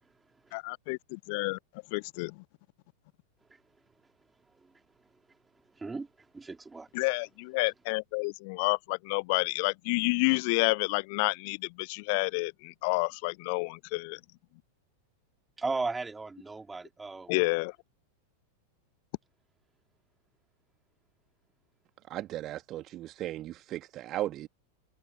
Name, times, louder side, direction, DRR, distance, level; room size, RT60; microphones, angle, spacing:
voice 1, 0.0-0.6 3.4-7.0 15.6-17.3, right 3 dB, 10° right, 3.7 m, -39 dB
voice 2, 0.5-1.6 1.9-2.4 6.9-14.2 17.3-17.7, left 31 dB, 45° left, 0.9 m, -29 dB
voice 3, 22.1-24.5, right 14 dB, 35° right, 1.7 m, -36 dB
figure-of-eight pair, 90°, 0 cm